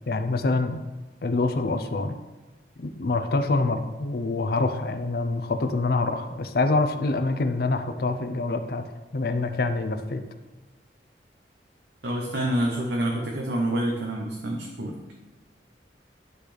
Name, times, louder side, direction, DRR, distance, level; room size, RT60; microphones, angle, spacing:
voice 1, 0.1-0.8 1.2-2.2 2.8-8.8 9.1-10.2, left 3 dB, 60° left, 7 dB, 0.6 m, -25 dB
voice 2, 12.0-15.0, right 1 dB, 75° right, 0 dB, 0.8 m, -27 dB
11.5 x 4.0 x 3.3 m, 1.2 s
head